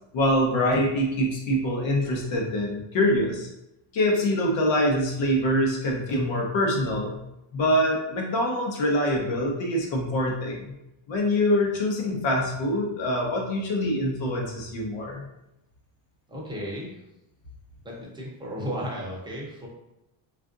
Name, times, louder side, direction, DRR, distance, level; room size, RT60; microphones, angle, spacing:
voice 1, 0.1-3.5 3.9-7.2 7.5-10.7 11.1-15.2, left 1 dB, 65° left, -1 dB, 0.9 m, -24 dB
voice 2, 16.3-17.0 17.8-19.7, equal, 10° right, -4 dB, 0.6 m, -34 dB
3.5 x 2.5 x 2.5 m, 0.87 s
cardioid pair, 155°, 50 cm